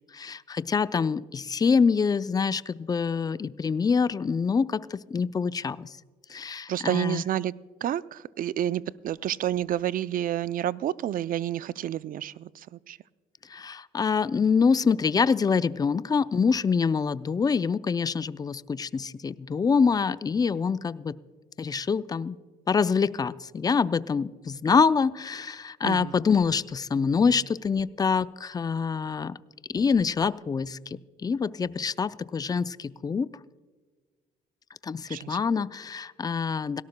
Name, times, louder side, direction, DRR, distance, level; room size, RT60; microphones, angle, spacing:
voice 1, 0.1-6.0 6.3-7.2 13.5-21.2 21.6-22.4 22.7-29.4 29.7-33.3 34.8-36.8, left 5 dB, 20° left, 0.4 m, -25 dB
voice 2, 6.7-7.5 7.8-13.0 25.8-26.1 35.1-35.4, right 11 dB, 55° right, 0.4 m, -29 dB
17.5 x 17.5 x 2.2 m
cardioid pair, 85°, 17 cm